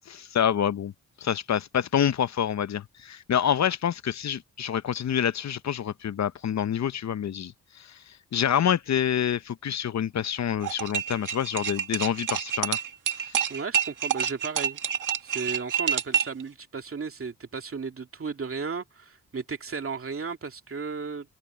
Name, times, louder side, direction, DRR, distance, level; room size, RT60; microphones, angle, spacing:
voice 1, 0.1-0.9 1.2-12.8 13.1-13.4, left 9 dB, 60° left, 0.8 m, -27 dB
sound 1, 10.6-16.4, right 9 dB, 80° right, 2.0 m, -28 dB
voice 2, 13.5-14.8 15.2-21.4, right 5 dB, 45° right, 2.5 m, -34 dB
cardioid pair, 65°, 31 cm